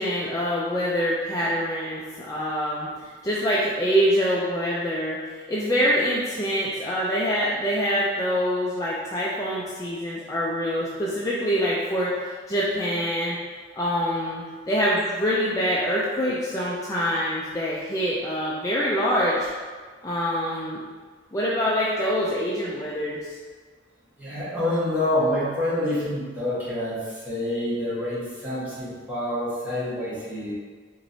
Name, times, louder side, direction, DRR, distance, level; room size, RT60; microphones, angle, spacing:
voice 1, 0.0-13.4 13.7-19.5 20.0-20.8 21.3-23.3, equal, 20° left, -6 dB, 0.4 m, -25 dB
voice 2, 24.2-30.5, left 1 dB, 10° right, -11 dB, 1.4 m, -27 dB
4.6 x 3.0 x 2.7 m, 1.5 s
head